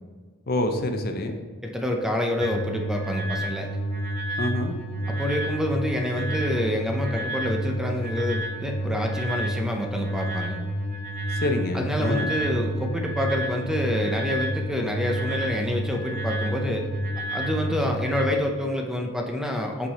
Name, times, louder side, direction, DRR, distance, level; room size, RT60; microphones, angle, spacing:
voice 1, 0.5-1.4 4.4-4.7 11.3-12.3, left 1 dB, 50° left, 6 dB, 0.6 m, -27 dB
voice 2, 1.6-3.7 5.1-10.6 11.7-16.8 17.3-19.9, left 1 dB, 5° right, 2 dB, 0.6 m, -27 dB
sound 1, 2.4-18.3, right 1 dB, 40° right, 1.0 m, -30 dB
5.7 x 5.6 x 4.2 m, 1.5 s
head